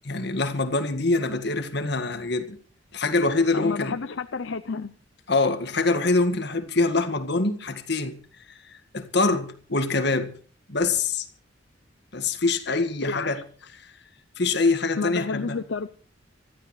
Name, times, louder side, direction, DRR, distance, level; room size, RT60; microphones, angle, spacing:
voice 1, 0.0-2.6 2.9-4.0 5.3-10.3 10.7-11.3 12.1-13.4 13.8-13.9 14.4-15.6, left 3 dB, 60° left, 1.9 m, -25 dB
voice 2, 3.5-4.9 13.0-13.4 15.0-15.9, left 4 dB, 75° left, 0.6 m, -30 dB
25.5 x 14.0 x 3.2 m
head